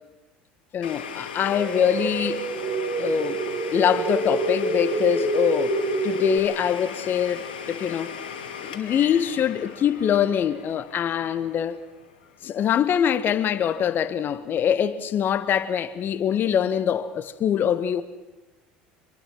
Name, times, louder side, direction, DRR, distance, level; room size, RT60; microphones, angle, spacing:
voice 1, 0.7-2.5 3.0-3.4 3.7-8.1 8.6-11.8 12.4-18.0, left 9 dB, 45° left, 1.4 m, -24 dB
Domestic sounds home sounds, 0.8-12.5, left 7 dB, 85° left, 2.2 m, -38 dB
sound 1, 1.4-6.4, right 3 dB, 50° right, 2.6 m, -27 dB
25.5 x 22.5 x 6.1 m
hypercardioid pair, 70°, 5 cm